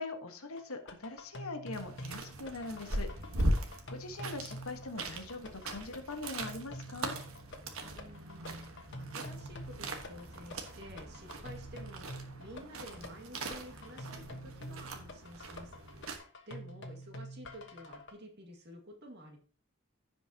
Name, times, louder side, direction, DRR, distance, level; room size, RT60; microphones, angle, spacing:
voice 1, 0.0-3.1 3.9-7.2, left 3 dB, 85° left, 6 dB, 1.4 m, -42 dB
sound 1, 0.6-18.1, equal, 55° left, 1.2 m, -47 dB
sound 2, 1.7-16.2, right 1 dB, 75° right, 1.4 m, -40 dB
voice 2, 7.8-16.2 16.5-19.4, equal, 55° right, 2 dB, 2.1 m, -51 dB
15.5 x 5.2 x 2.9 m, 0.43 s
head